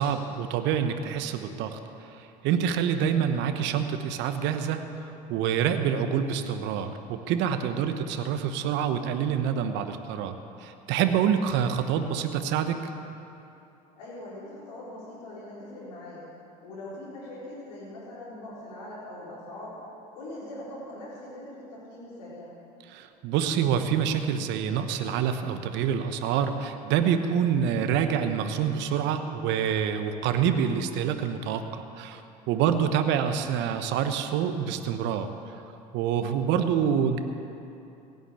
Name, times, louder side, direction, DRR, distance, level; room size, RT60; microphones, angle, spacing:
voice 1, 0.0-12.8 22.9-35.3 35.9-37.2, right 8 dB, 60° right, 8 dB, 1.1 m, -27 dB
voice 2, 7.7-8.0 14.0-16.2 16.6-19.8 20.1-22.5 32.6-32.9, left 1 dB, 75° left, -8 dB, 4.5 m, -42 dB
16.5 x 9.4 x 8.2 m, 2.8 s
hypercardioid pair, 70°, 21 cm